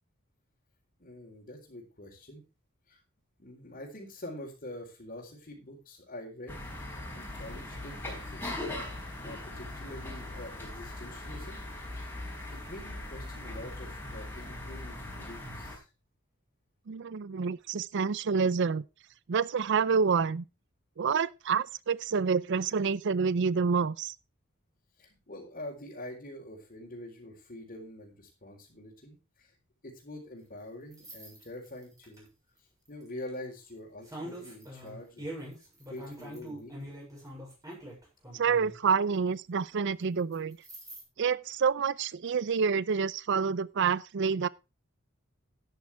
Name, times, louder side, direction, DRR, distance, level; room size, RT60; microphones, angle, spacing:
voice 1, 1.0-2.4 2.9-3.0 3.4-8.6 9.2-11.6 11.9-12.1 12.5-15.9 25.0-29.5 29.8-32.3 32.9-35.3 35.9-36.9, left 1 dB, 45° left, 3.9 m, -45 dB
sound 1, 6.5-15.8, left 1 dB, 10° left, 4.7 m, -40 dB
voice 2, 16.9-18.8 19.3-20.4 21.0-24.1 38.3-40.6 41.2-44.5, right 5 dB, 60° right, 0.5 m, -28 dB
sound 2, 30.9-32.2 33.0-33.3 34.0-38.8 40.3-41.0, right 1 dB, 20° right, 7.0 m, -43 dB
13.0 x 10.5 x 3.4 m
head